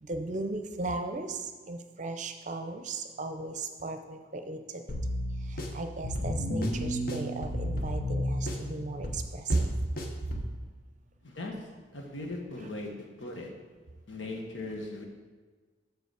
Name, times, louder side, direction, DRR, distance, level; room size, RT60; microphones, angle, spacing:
voice 1, 0.0-4.8 5.5-9.7, right 2 dB, 40° right, 6 dB, 0.6 m, -35 dB
sound 1, 4.9-10.5, equal, 50° left, 1.0 m, -33 dB
voice 2, 11.2-11.5 11.9-12.9 13.2-13.5 14.1-15.1, left 2 dB, 80° left, 1 dB, 1.4 m, -38 dB
6.9 x 6.9 x 4.8 m, 1.4 s
head